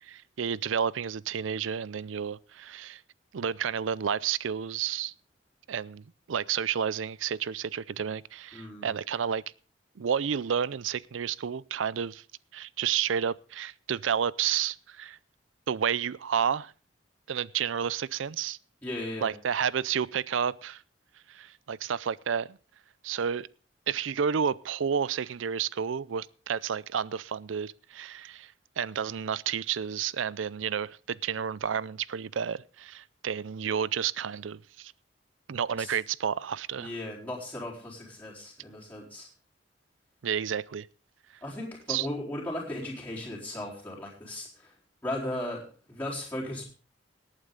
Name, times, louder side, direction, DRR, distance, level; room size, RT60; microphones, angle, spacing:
voice 1, 0.1-3.0 3.3-5.1 5.7-9.4 10.0-12.2 12.5-15.2 15.7-16.7 17.3-18.6 19.2-20.8 21.3-22.6 23.0-23.5 23.9-34.9 35.5-36.9 40.2-40.9 41.9-42.1, right 7 dB, 90° right, 0.5 m, -31 dB
voice 2, 8.5-8.9 18.8-19.3 35.8-35.9 36.8-39.3 41.4-44.7 45.0-46.7, left 1 dB, 10° left, 4.2 m, -36 dB
18.5 x 8.9 x 3.8 m
head